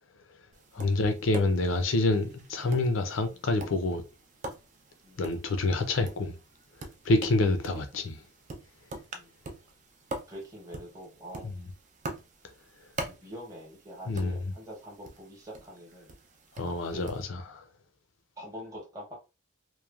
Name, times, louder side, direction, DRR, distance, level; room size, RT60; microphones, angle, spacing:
Tap, 0.5-17.3, right 2 dB, 35° right, 0.4 m, -45 dB
voice 1, 0.7-4.0 5.2-6.3 7.0-8.1 14.1-14.4 16.6-17.6, left 2 dB, 75° left, 0.6 m, -27 dB
voice 2, 10.3-11.5 13.1-16.1 16.9-17.0 18.4-19.2, equal, 15° right, 0.9 m, -45 dB
3.1 x 2.2 x 2.3 m
head